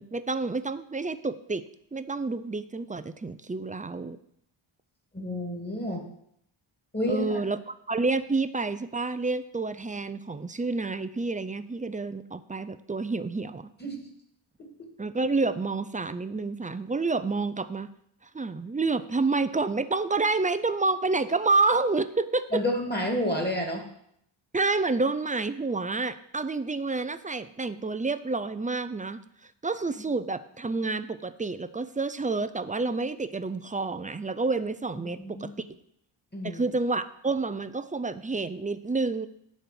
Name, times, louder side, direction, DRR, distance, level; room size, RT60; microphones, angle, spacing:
voice 1, 0.0-1.6 1.9-4.2 7.1-13.7 15.0-17.9 18.3-22.6 24.5-29.2 29.6-35.5 36.4-39.3, right 3 dB, 15° right, 12 dB, 0.4 m, -29 dB
voice 2, 5.1-6.0 6.9-7.4 13.8-14.1 22.5-23.9 34.9-35.5 36.3-36.6, equal, 20° left, 2 dB, 2.3 m, -30 dB
10.5 x 4.3 x 7.6 m, 0.72 s
wide cardioid pair, 100°, 50 cm